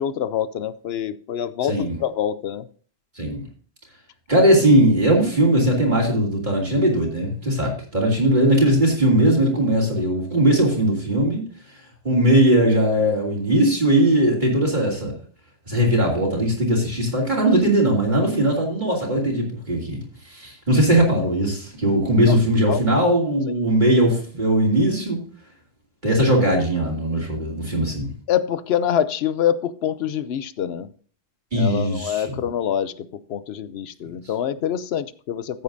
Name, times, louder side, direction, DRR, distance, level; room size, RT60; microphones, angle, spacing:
voice 1, 0.0-2.7 22.3-22.4 22.7-22.8 23.5-23.6 28.3-30.9 31.5-35.6, left 9 dB, 65° left, 15 dB, 0.8 m, -25 dB
voice 2, 1.7-2.0 3.2-3.4 4.3-11.4 12.0-15.1 15.7-20.0 20.3-25.2 26.0-28.1 31.5-32.3, right 1 dB, 40° right, -2 dB, 2.9 m, -19 dB
14.0 x 8.4 x 2.6 m, 0.43 s
omnidirectional pair, 1.2 m